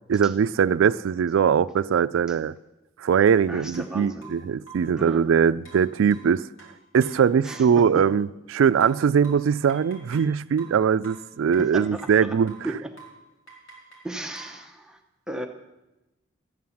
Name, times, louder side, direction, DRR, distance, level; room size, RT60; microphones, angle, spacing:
voice 1, 0.1-2.6 3.0-6.5 6.9-12.5, right 7 dB, 90° right, 0.3 m, -21 dB
sound 1, 3.3-3.4 3.7-3.9 4.2-5.0 5.7-7.7 8.8-10.3 10.6-12.2 12.5-12.7 13.0-13.2 13.5-14.6, right 4 dB, 90° left, 4.0 m, -48 dB
voice 2, 3.5-4.3 5.0-5.3 7.4-8.1 11.6-12.4 12.6-12.9 14.0-15.0 15.3-15.5, right 1 dB, 5° right, 0.8 m, -35 dB
13.5 x 9.4 x 7.1 m
head